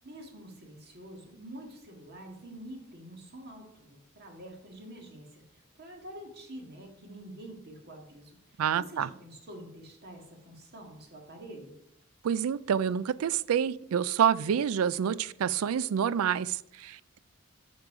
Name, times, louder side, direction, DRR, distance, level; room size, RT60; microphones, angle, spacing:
voice 1, 0.0-11.8, right 1 dB, 50° right, 1 dB, 1.9 m, -47 dB
voice 2, 8.6-9.1 12.2-17.2, right 8 dB, 90° right, 19 dB, 0.4 m, -28 dB
8.2 x 6.5 x 4.9 m, 0.78 s
head